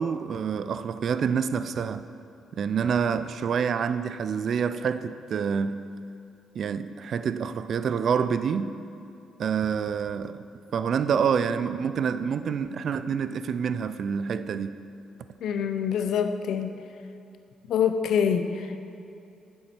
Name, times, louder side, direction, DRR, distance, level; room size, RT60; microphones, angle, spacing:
voice 1, 0.0-2.0 2.5-5.9 6.5-8.8 9.4-10.5 10.7-14.8, right 7 dB, 60° right, 0.4 m, -27 dB
voice 2, 15.4-16.8 17.7-18.8, left 7 dB, 75° left, 0.6 m, -25 dB
9.5 x 7.2 x 4.4 m
cardioid pair, 90°, 0 cm